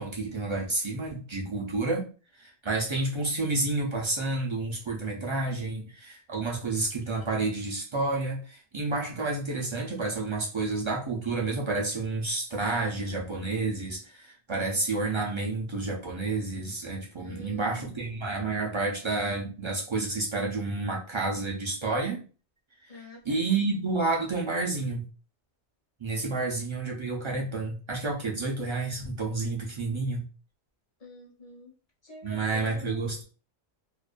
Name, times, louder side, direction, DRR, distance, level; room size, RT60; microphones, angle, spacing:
voice 1, 0.0-2.1 2.4-22.2 23.2-25.0 26.0-30.2 32.2-33.2, right 3 dB, 40° right, -2 dB, 0.4 m, -30 dB
voice 2, 17.2-18.0 22.9-23.2 26.4-26.5 31.0-31.7 32.0-33.1, left 2 dB, 40° left, -1 dB, 0.7 m, -46 dB
2.4 x 2.2 x 2.4 m, 0.36 s
omnidirectional pair, 1.2 m